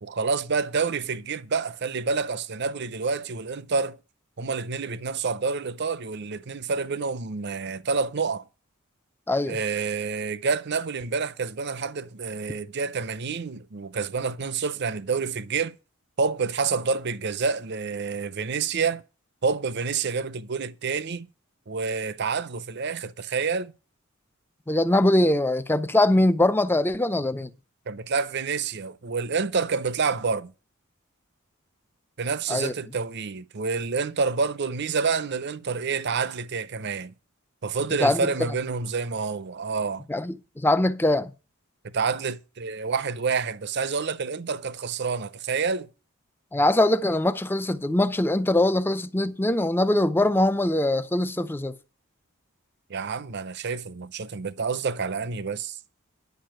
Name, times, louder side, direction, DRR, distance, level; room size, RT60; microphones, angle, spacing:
voice 1, 0.0-4.0 4.4-8.5 9.5-15.7 16.2-19.0 19.4-21.3 21.7-23.7 27.9-30.5 32.2-37.1 37.6-40.1 41.8-45.9 52.9-55.8, right 5 dB, 50° right, 0.6 m, -28 dB
voice 2, 9.3-9.6 24.7-27.5 32.5-32.7 38.0-38.2 40.1-41.3 46.5-51.7, left 1 dB, 10° left, 0.5 m, -22 dB
10.5 x 5.3 x 7.7 m
head